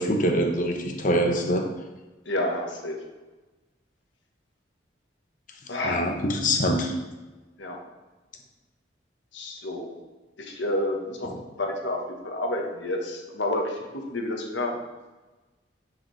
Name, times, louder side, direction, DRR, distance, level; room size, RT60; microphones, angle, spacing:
voice 1, 0.0-1.7 5.8-6.9 11.3-11.4, equal, 45° left, 3 dB, 0.9 m, -24 dB
voice 2, 2.2-3.0 5.7-6.0 7.6-7.8 9.3-9.9 10.4-11.3 11.6-12.0 12.2-13.8 14.1-14.8, left 1 dB, 75° left, 1 dB, 1.3 m, -29 dB
9.8 x 4.9 x 3.2 m, 1.2 s
head